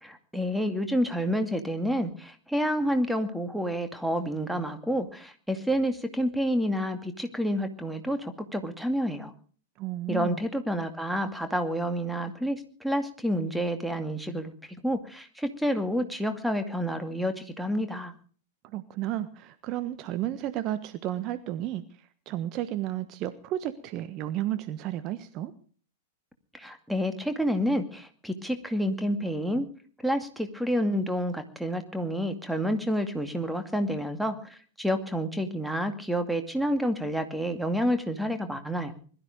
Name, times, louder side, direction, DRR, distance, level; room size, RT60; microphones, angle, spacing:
voice 1, 0.0-9.3 10.1-18.1 26.5-29.7 30.0-38.9, equal, ahead, 7 dB, 2.3 m, -29 dB
voice 2, 9.8-10.4 18.6-25.5, right 13 dB, 35° right, 12 dB, 1.3 m, -33 dB
21.5 x 13.5 x 5.1 m, 0.44 s
figure-of-eight pair, 100°, 0 cm